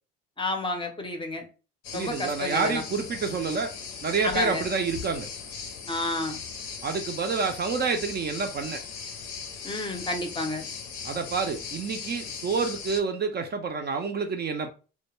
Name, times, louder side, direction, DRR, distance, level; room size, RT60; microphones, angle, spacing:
voice 1, 0.4-1.5 1.9-2.8 4.2-4.7 5.9-6.4 9.6-10.7, left 2 dB, 15° left, 0.5 m, -30 dB
sound 1, 1.8-13.0, left 6 dB, 85° left, 0.6 m, -39 dB
voice 2, 1.9-3.7 4.0-5.3 6.8-8.8 11.0-14.7, right 5 dB, 35° right, 0.4 m, -28 dB
2.2 x 2.1 x 3.0 m
supercardioid pair, 80°, 30 cm